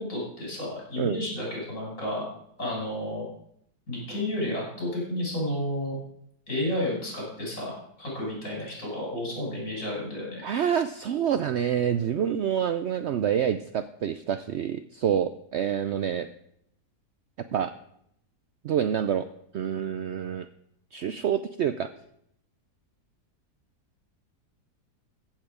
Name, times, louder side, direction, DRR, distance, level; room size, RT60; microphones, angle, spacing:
voice 1, 0.0-2.2 2.6-3.3 3.9-6.0 6.5-10.5, left 1 dB, 50° left, -4 dB, 5.7 m, -31 dB
voice 2, 10.4-16.3 17.5-17.7 18.6-19.2 19.5-20.5 20.9-21.9, right 9 dB, 85° right, 11 dB, 0.6 m, -27 dB
15.0 x 7.5 x 4.9 m, 0.72 s
omnidirectional pair, 1.7 m